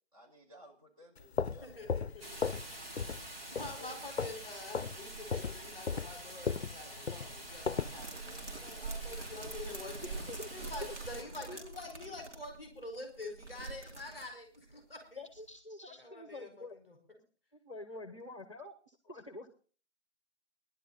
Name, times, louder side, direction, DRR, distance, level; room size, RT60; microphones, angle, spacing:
voice 1, 0.1-2.1 3.7-4.0, left 1 dB, 30° right, -2 dB, 4.9 m, -56 dB
sound 1, 1.2-2.7 3.0-3.3 3.6-4.4 4.7-5.0 5.3-8.0, left 5 dB, 65° left, 0.6 m, -36 dB
voice 2, 1.4-2.5 3.5-10.2 10.5-15.2 16.0-17.0, left 2 dB, 5° right, 2 dB, 3.8 m, -47 dB
Rain, 2.2-11.2, right 2 dB, 55° right, 4.6 m, -45 dB
sound 2, 7.7-14.7 15.0-15.1 15.4-15.5, right 2 dB, 80° right, 3.4 m, -48 dB
voice 3, 10.0-10.5 10.8-10.9 11.5-11.6 15.2-16.8 17.5-19.5, left 2 dB, 25° left, 10 dB, 1.1 m, -46 dB
18.5 x 11.5 x 4.0 m, 0.39 s
figure-of-eight pair, 165°, 35 cm